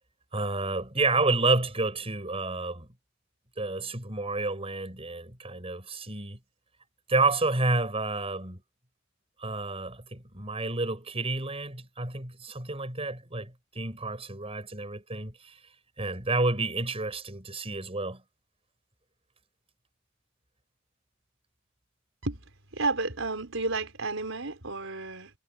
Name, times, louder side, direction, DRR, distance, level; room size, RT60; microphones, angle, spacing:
voice 1, 0.3-2.9 3.6-6.4 7.1-8.6 9.4-15.5 16.0-18.2, right 3 dB, 30° right, 7.2 m, -30 dB
voice 2, 22.7-25.3, right 3 dB, 80° right, 5.0 m, -31 dB
head